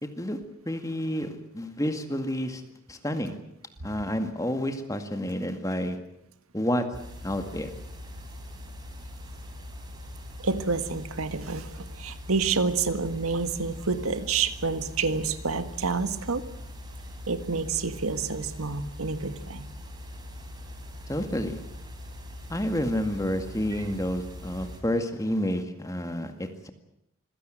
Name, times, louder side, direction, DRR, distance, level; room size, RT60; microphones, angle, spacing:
voice 1, 0.0-0.4 0.7-1.3 1.5-2.6 2.9-3.3 3.8-6.0 6.5-6.8 7.2-7.7 21.1-21.6 22.5-26.7, equal, 15° left, 7 dB, 2.0 m, -29 dB
sound 1, 6.9-24.8, left 1 dB, 20° right, 3.9 m, -42 dB
voice 2, 10.4-16.4 17.3-19.6 23.8-23.9, right 4 dB, 90° right, 11 dB, 1.6 m, -28 dB
25.5 x 17.0 x 9.1 m, 0.80 s
head